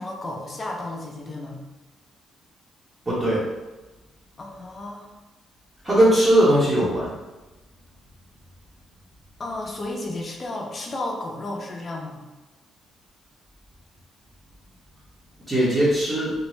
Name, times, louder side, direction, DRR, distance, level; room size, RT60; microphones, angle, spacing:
voice 1, 0.0-1.6 4.4-5.1 9.4-12.3, left 2 dB, 35° left, -1 dB, 0.5 m, -33 dB
voice 2, 3.1-3.4 5.8-7.1 15.5-16.3, right 1 dB, 20° right, -8 dB, 0.8 m, -19 dB
2.5 x 2.0 x 3.1 m, 1.1 s
cardioid pair, 90°, 0 cm